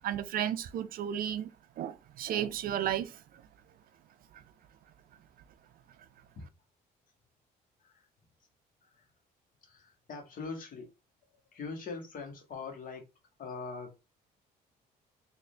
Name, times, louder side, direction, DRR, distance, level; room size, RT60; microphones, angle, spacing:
voice 1, 0.0-1.5 1.8-3.4 4.3-4.4, right 10 dB, 60° right, 0.4 m, -33 dB
voice 2, 9.7-10.9 11.5-13.0 13.4-14.0, left 4 dB, 55° left, 1.5 m, -42 dB
3.7 x 2.6 x 3.2 m
cardioid pair, 110°, 17 cm